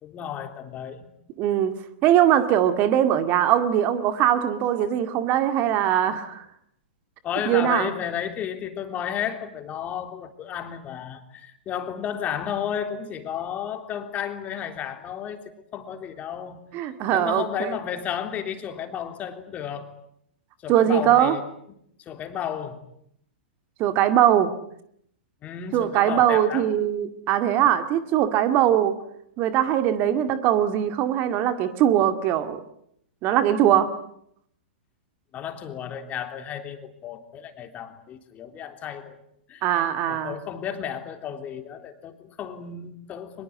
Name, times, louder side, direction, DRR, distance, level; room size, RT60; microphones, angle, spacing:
voice 1, 0.0-1.1 7.2-15.4 15.7-16.6 17.1-19.9 20.6-21.4 22.1-22.8 25.4-26.7 35.3-39.2 39.5-43.4, left 9 dB, 30° left, 7 dB, 3.5 m, -33 dB
voice 2, 1.4-6.5 7.5-7.9 16.7-17.8 20.7-21.4 23.8-24.5 25.7-29.0 29.4-32.6 33.2-33.9 39.6-40.3, right 11 dB, 35° right, 10 dB, 2.3 m, -21 dB
24.0 x 22.0 x 9.7 m, 0.72 s
hypercardioid pair, 110°, 5 cm